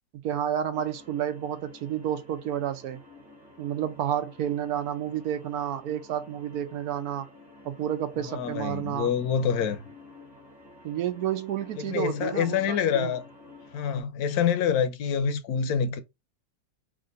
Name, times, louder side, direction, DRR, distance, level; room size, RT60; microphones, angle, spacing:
voice 1, 0.2-3.0 3.6-7.3 7.6-9.1 10.8-13.1, right 10 dB, 70° right, 1.0 m, -30 dB
sound 1, 0.7-14.0, left 3 dB, 25° right, 1.4 m, -51 dB
voice 2, 8.2-9.9 11.8-13.3 13.7-16.0, left 7 dB, 70° left, 1.1 m, -26 dB
3.6 x 2.5 x 3.9 m
omnidirectional pair, 1.8 m